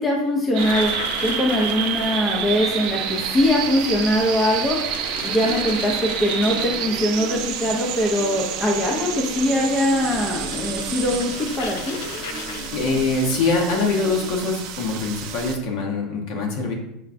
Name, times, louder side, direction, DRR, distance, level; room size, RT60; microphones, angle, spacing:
voice 1, 0.0-4.8 5.2-12.0, left 1 dB, 25° left, 0 dB, 0.5 m, -22 dB
sound 1, 0.5-15.5, right 8 dB, 55° right, 0.4 m, -29 dB
sound 2, 0.6-15.7, left 6 dB, 80° left, 0.3 m, -38 dB
sound 3, 5.0-14.3, right 3 dB, 20° right, 0.9 m, -39 dB
voice 2, 12.7-16.7, left 3 dB, 65° left, 0 dB, 0.8 m, -23 dB
5.6 x 2.2 x 2.5 m, 0.82 s
supercardioid pair, 135°, 0 cm